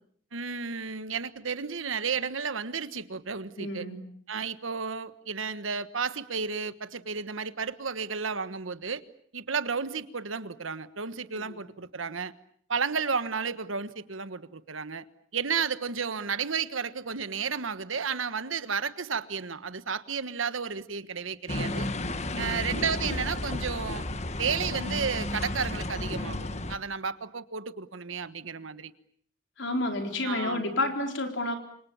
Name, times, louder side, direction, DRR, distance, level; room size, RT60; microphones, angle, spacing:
voice 1, 0.3-3.9 4.3-9.0 9.3-12.3 12.7-15.0 15.3-21.9 22.4-24.1 24.4-28.9 30.2-30.6, right 5 dB, 85° right, 13 dB, 1.4 m, -32 dB
voice 2, 3.6-4.0 11.3-11.6 22.3-22.7 29.6-31.6, left 2 dB, 70° left, 4 dB, 4.3 m, -30 dB
sound 1, 21.5-26.8, left 2 dB, 35° left, 1.5 m, -32 dB
28.5 x 26.5 x 7.2 m, 0.62 s
head